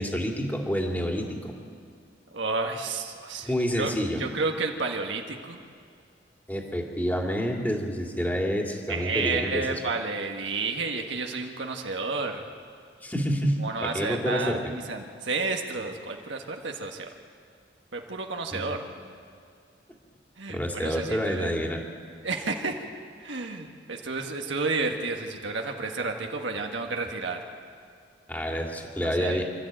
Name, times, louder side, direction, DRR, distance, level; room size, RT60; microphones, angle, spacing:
voice 1, 0.0-1.5 3.5-4.2 6.5-9.8 13.0-14.7 18.5-18.7 20.5-21.8 28.3-29.4, equal, 10° left, 1 dB, 2.4 m, -28 dB
voice 2, 2.3-3.5 3.7-3.9 4.2-5.6 8.9-12.4 13.6-17.1 17.9-18.8 20.4-21.5 22.2-22.8 23.2-27.4 29.2-29.4, right 3 dB, 90° right, 3 dB, 1.6 m, -31 dB
27.5 x 13.0 x 9.0 m, 2.3 s
head